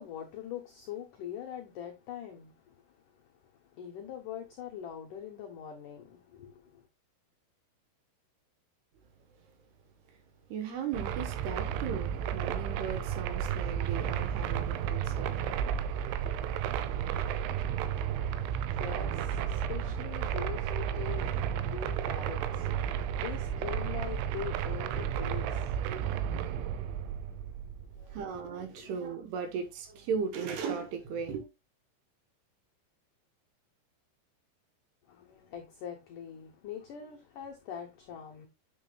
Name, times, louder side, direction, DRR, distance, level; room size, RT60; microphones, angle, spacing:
voice 1, 0.0-3.3 3.7-6.8 18.1-26.4 26.6-28.2 28.7-29.0 35.1-38.5, left 9 dB, 85° left, 1.8 m, -44 dB
voice 2, 10.5-15.5 25.9-26.0 28.1-31.5, right 6 dB, 70° right, 3.0 m, -37 dB
sound 1, 10.9-28.3, right 9 dB, 85° right, 3.2 m, -33 dB
8.8 x 8.1 x 2.3 m
omnidirectional pair, 5.4 m